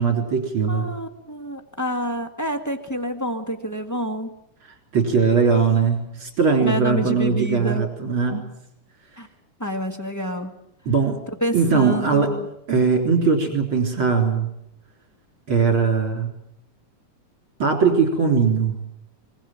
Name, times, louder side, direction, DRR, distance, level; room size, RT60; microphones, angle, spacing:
voice 1, 0.0-0.9 4.9-8.4 10.9-11.2 11.5-12.3 12.7-14.5 15.5-16.3 17.6-18.7, right 5 dB, 40° right, 4 dB, 4.3 m, -20 dB
voice 2, 0.7-4.3 6.6-7.8 9.2-9.3 9.6-10.5 11.4-12.5, equal, 10° left, 6 dB, 0.8 m, -28 dB
24.5 x 20.5 x 7.6 m, 0.80 s
omnidirectional pair, 3.5 m